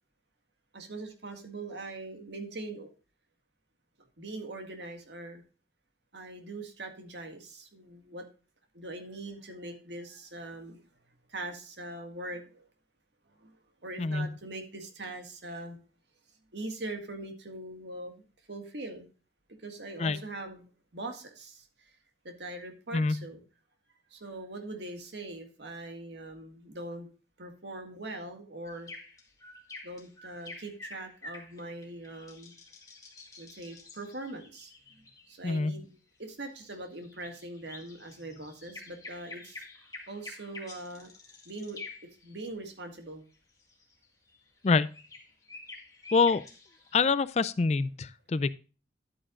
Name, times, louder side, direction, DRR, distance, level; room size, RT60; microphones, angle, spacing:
voice 1, 0.7-2.9 4.2-5.4 6.1-8.3 8.7-10.8 11.3-12.7 13.4-13.6 13.8-15.8 16.5-19.1 19.5-20.6 20.9-22.0 22.2-23.4 24.1-27.1 27.4-28.9 29.8-32.5 33.4-41.1 41.5-41.8 42.2-43.2, right 2 dB, 70° right, 1.9 m, -42 dB
voice 2, 14.0-14.3 20.0-20.2 22.9-23.2 35.4-35.8 44.6-44.9 46.1-46.4 46.9-48.5, left 4 dB, 35° left, 0.3 m, -26 dB
sound 1, 28.6-35.6 36.5-42.3 43.3-47.0, left 3 dB, 20° left, 1.9 m, -48 dB
11.0 x 8.8 x 2.4 m
head